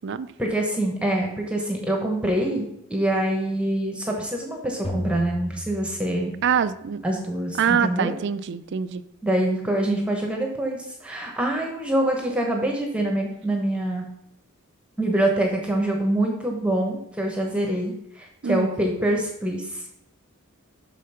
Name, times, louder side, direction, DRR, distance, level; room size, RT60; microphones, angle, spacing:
voice 1, 0.4-2.6 2.9-6.3 7.0-8.1 9.2-14.1 15.0-19.8, right 1 dB, 5° right, 1 dB, 1.0 m, -25 dB
sound 1, 4.8-6.8, equal, 25° left, 1.8 m, -34 dB
voice 2, 6.4-7.0 7.6-9.0 18.4-18.7, right 7 dB, 55° right, 12 dB, 0.4 m, -24 dB
6.4 x 5.1 x 5.6 m, 0.78 s
head